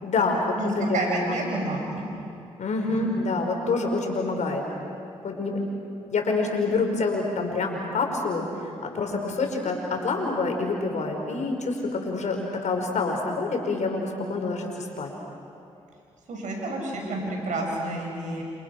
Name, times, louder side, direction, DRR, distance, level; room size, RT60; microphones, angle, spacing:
voice 1, 0.0-1.6 2.6-4.6 5.2-5.6 6.1-15.1, left 3 dB, 65° left, 2 dB, 5.4 m, -27 dB
voice 2, 0.5-2.1 2.9-3.0 16.3-18.4, right 2 dB, 75° right, 0 dB, 7.0 m, -30 dB
29.0 x 28.5 x 6.3 m, 2.6 s
supercardioid pair, 45°, 13 cm